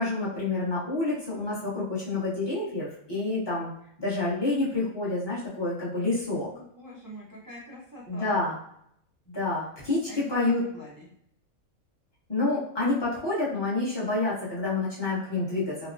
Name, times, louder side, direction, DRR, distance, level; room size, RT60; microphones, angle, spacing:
voice 1, 0.0-3.7 4.0-6.5 8.1-8.6 9.3-10.6 12.3-15.9, left 2 dB, 20° left, -8 dB, 0.9 m, -28 dB
voice 2, 6.5-8.4 10.1-11.0, equal, 35° right, -7 dB, 0.3 m, -45 dB
3.1 x 2.1 x 2.5 m, 0.69 s
omnidirectional pair, 1.5 m